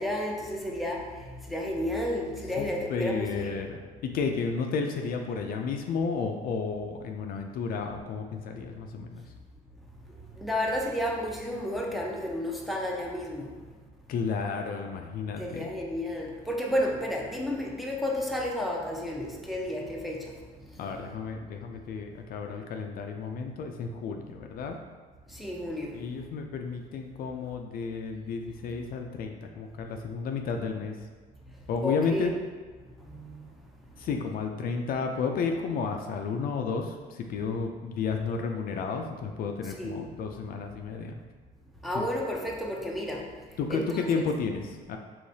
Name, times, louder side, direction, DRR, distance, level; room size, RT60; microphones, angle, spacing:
voice 1, 0.0-3.6 10.4-13.5 15.4-20.3 25.3-26.0 31.8-32.4 33.0-33.4 39.7-40.0 41.8-43.2 43.7-44.1, left 1 dB, ahead, -2 dB, 0.6 m, -32 dB
voice 2, 2.6-9.2 14.1-15.7 20.8-24.8 25.9-31.0 31.7-32.3 34.0-41.2 41.9-42.0 43.6-45.0, left 5 dB, 60° left, 4 dB, 0.4 m, -32 dB
4.8 x 3.1 x 2.7 m, 1.5 s
cardioid pair, 110°, 17 cm